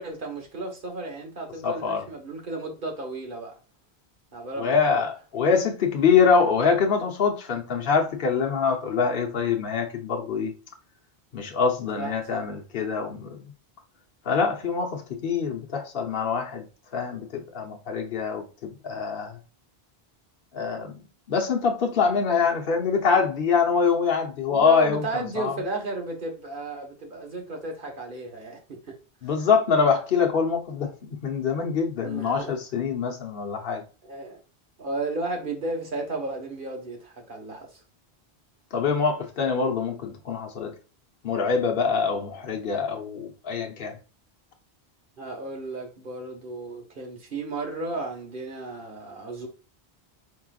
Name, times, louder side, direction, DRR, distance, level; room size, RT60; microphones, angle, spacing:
voice 1, 0.0-3.6 4.3-5.0 11.9-12.4 24.5-29.0 32.0-32.5 34.0-34.4 34.8-37.8 45.2-49.5, right 2 dB, 55° right, 1.5 m, -34 dB
voice 2, 1.6-2.0 4.6-10.5 11.3-13.5 14.2-16.7 16.9-19.4 20.5-20.9 21.3-25.5 29.2-33.8 38.7-40.7 41.2-44.0, left 5 dB, 65° left, 1.1 m, -24 dB
4.7 x 4.5 x 2.4 m
omnidirectional pair, 1.1 m